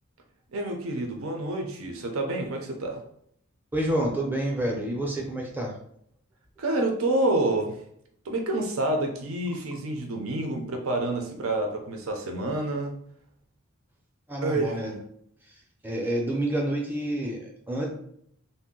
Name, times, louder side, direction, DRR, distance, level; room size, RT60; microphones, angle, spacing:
voice 1, 0.5-3.0 6.6-7.8 8.2-12.9 14.4-14.8, right 2 dB, 75° right, 3 dB, 0.6 m, -28 dB
voice 2, 3.7-5.7 14.3-15.0 15.8-17.9, right 1 dB, 10° right, -1 dB, 0.5 m, -28 dB
2.6 x 2.1 x 3.7 m, 0.68 s
head